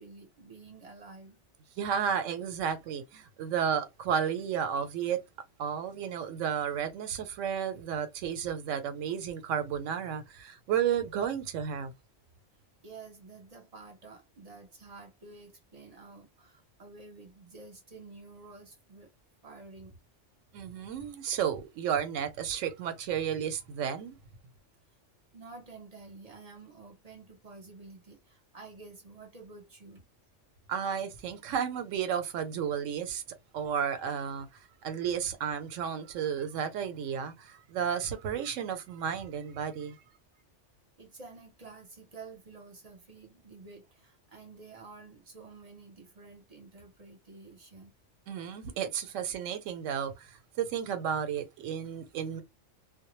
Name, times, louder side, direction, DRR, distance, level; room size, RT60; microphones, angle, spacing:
voice 1, 0.0-1.4 12.5-19.1 19.4-20.0 25.3-30.1 41.0-47.9, right 3 dB, 40° right, 0.7 m, -50 dB
voice 2, 1.8-5.2 5.6-11.9 20.5-24.2 30.7-33.2 33.5-40.0 48.3-52.4, right 8 dB, 85° right, 0.9 m, -32 dB
2.1 x 2.1 x 2.9 m
omnidirectional pair, 1.3 m